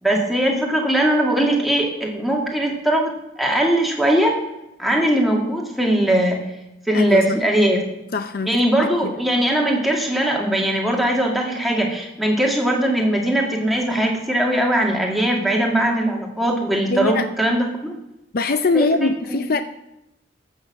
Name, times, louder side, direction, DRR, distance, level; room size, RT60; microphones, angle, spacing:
voice 1, 0.0-4.4 4.8-6.4 6.9-7.8 8.4-17.9 18.7-19.4, right 1 dB, ahead, -1 dB, 2.1 m, -20 dB
voice 2, 6.9-7.4 8.1-9.1 16.9-17.3 18.3-19.6, left 3 dB, 50° left, 10 dB, 0.5 m, -22 dB
14.0 x 6.5 x 7.5 m, 0.89 s
head